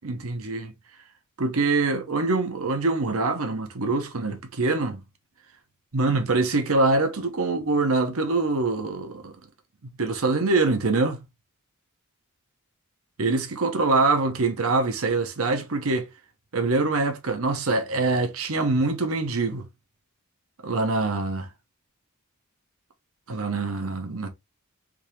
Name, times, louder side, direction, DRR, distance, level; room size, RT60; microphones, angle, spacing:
voice 1, 0.0-0.7 1.4-5.0 5.9-9.3 9.8-11.2 13.2-16.1 16.5-19.6 20.6-21.5 23.3-24.3, right 3 dB, 70° right, 0.9 m, -24 dB
3.6 x 2.8 x 3.0 m
head